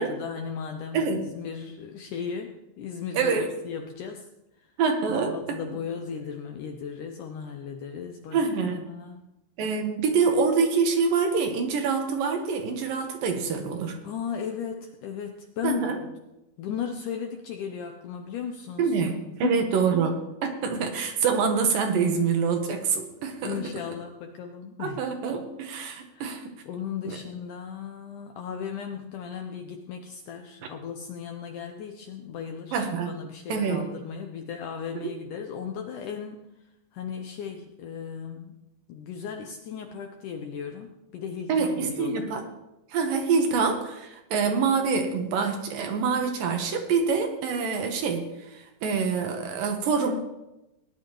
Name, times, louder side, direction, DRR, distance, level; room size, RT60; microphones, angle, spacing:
voice 1, 0.0-3.3 3.6-4.3 4.6-4.7 5.1-9.2 14.0-16.1 16.6-18.9 19.3-19.7 23.4-25.0 26.1-26.4 26.7-32.8 33.1-36.4 36.9-38.6 38.9-42.4, left 7 dB, 75° left, 4 dB, 1.9 m, -36 dB
voice 2, 0.9-1.2 3.1-3.5 4.8-5.6 8.3-8.8 9.6-14.0 15.6-16.0 18.8-23.6 24.8-26.4 27.0-27.2 32.7-33.1 33.5-33.8 35.0-35.1 41.5-42.4 42.9-50.1, right 5 dB, 70° right, 4 dB, 2.7 m, -26 dB
18.5 x 11.0 x 3.1 m, 0.93 s
omnidirectional pair, 4.5 m